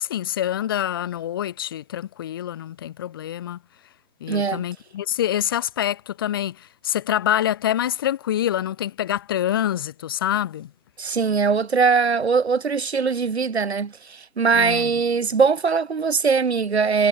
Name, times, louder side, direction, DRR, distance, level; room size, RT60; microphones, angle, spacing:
voice 1, 0.0-3.6 4.2-10.7 14.5-14.9, left 11 dB, 15° left, 3.1 m, -26 dB
voice 2, 4.3-4.6 11.0-17.1, right 5 dB, 55° right, 5.6 m, -21 dB
hypercardioid pair, 180°, 39 cm